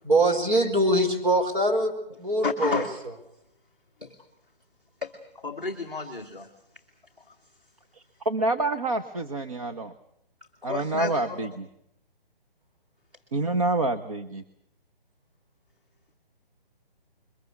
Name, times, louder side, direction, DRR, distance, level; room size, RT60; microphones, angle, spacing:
voice 1, 0.0-1.9 2.2-2.8, right 1 dB, 55° right, 4 dB, 5.4 m, -22 dB
voice 2, 2.4-3.0 4.0-4.1 5.0-6.5 7.3-7.4 10.7-11.4, left 5 dB, 5° right, -5 dB, 1.0 m, -32 dB
voice 3, 7.9-9.9 10.6-11.7 13.3-14.4, right 2 dB, 35° right, 7 dB, 1.0 m, -27 dB
22.5 x 20.5 x 8.3 m, 0.76 s
hypercardioid pair, 175°, 29 cm